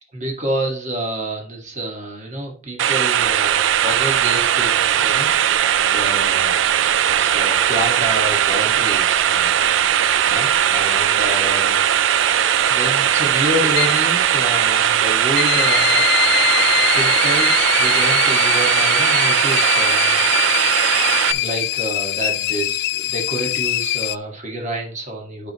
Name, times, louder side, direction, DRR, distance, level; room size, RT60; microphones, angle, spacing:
voice 1, 0.1-5.3 5.9-6.6 7.1-9.6 9.8-11.8 12.7-16.0 16.9-20.2 21.2-25.5, right 1 dB, 40° right, 0 dB, 1.8 m, -28 dB
sound 1, 2.8-21.3, right 10 dB, 75° right, 0.4 m, -18 dB
sound 2, 3.2-18.2, equal, 25° right, 3.1 m, -40 dB
sound 3, 7.9-24.2, left 14 dB, 60° left, 0.3 m, -24 dB
11.5 x 4.6 x 3.0 m, 0.44 s
head